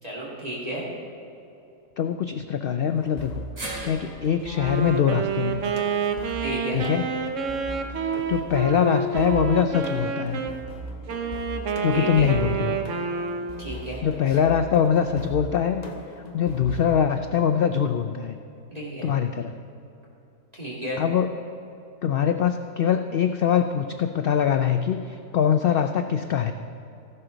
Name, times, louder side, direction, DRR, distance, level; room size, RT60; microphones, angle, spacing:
voice 1, 0.0-0.9 6.4-6.8 11.9-12.3 13.6-14.0 14.3-14.4 18.7-19.1 20.5-21.0, right 1 dB, 30° right, -6 dB, 2.4 m, -33 dB
voice 2, 2.0-3.5 3.8-5.6 6.7-7.0 8.0-10.4 11.8-12.8 14.0-15.8 16.3-18.4 19.0-19.5 21.0-21.3 22.0-26.5, left 8 dB, 65° left, 7 dB, 0.6 m, -23 dB
sound 1, 2.9-17.0, equal, 35° left, 0.8 m, -39 dB
sound 2, 3.6-7.8 8.2-8.3 9.4-9.5, right 2 dB, 90° right, 3.0 m, -42 dB
Wind instrument woodwind instrument, 4.4-10.6 11.1-13.7, right 5 dB, 70° right, 1.2 m, -28 dB
14.5 x 11.0 x 3.9 m, 2.8 s
omnidirectional pair, 1.4 m